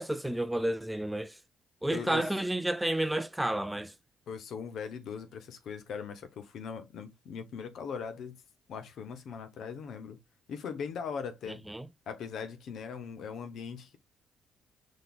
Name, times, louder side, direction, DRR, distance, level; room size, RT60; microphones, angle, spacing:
voice 1, 0.0-1.4 1.8-3.9 11.5-11.9, right 1 dB, 5° right, 0.4 m, -31 dB
voice 2, 1.9-2.3 4.3-8.4 8.7-10.2 10.5-11.6 12.1-14.0, left 6 dB, 70° left, 0.9 m, -40 dB
5.2 x 3.9 x 2.4 m
cardioid pair, 90°, 0 cm